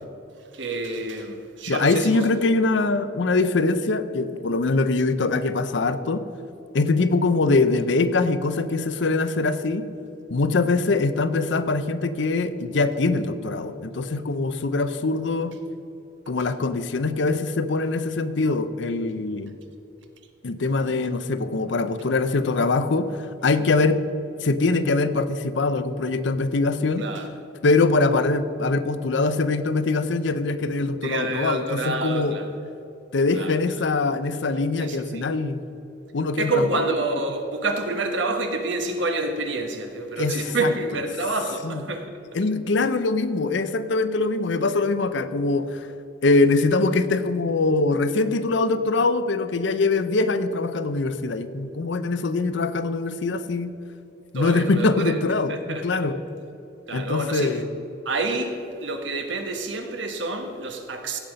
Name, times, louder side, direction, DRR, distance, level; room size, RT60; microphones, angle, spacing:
voice 1, 0.5-2.2 27.0-27.3 31.0-32.5 33.3-33.6 34.8-35.3 36.4-42.1 54.3-55.1 55.5-55.8 56.9-57.6 58.0-61.2, right 2 dB, 80° right, 1.2 m, -28 dB
voice 2, 1.7-6.3 6.7-9.9 10.3-15.6 16.3-19.5 20.4-24.0 24.4-27.1 27.6-32.4 33.1-35.6 36.1-37.2 40.2-41.0 41.6-41.8 42.3-45.9 46.2-53.7 54.3-56.2 56.9-57.7, left 3 dB, 75° left, 0.6 m, -23 dB
16.0 x 5.7 x 5.2 m
head